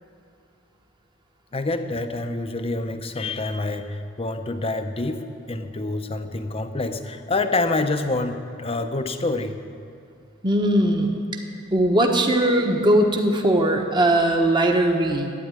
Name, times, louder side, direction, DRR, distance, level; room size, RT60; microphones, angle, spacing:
voice 1, 1.5-9.6, left 2 dB, 30° left, 8 dB, 0.7 m, -27 dB
voice 2, 10.4-11.2 11.7-15.3, right 1 dB, 20° right, 3 dB, 1.2 m, -19 dB
12.5 x 9.4 x 9.6 m, 2.4 s
head